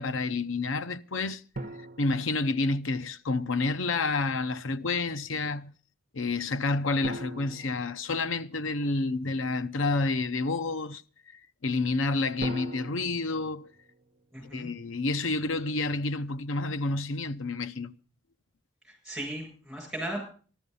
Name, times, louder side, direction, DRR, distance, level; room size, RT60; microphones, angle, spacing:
voice 1, 0.0-1.4 2.0-5.7 6.1-11.0 11.3-13.7 14.5-18.0, left 3 dB, 80° left, 0.7 m, -29 dB
sound 1, 1.5-3.2 7.0-8.9 12.4-14.7, right 2 dB, 45° right, 1.1 m, -42 dB
voice 2, 14.3-14.7 18.8-20.2, right 1 dB, ahead, 7.9 m, -36 dB
14.0 x 12.5 x 5.4 m
head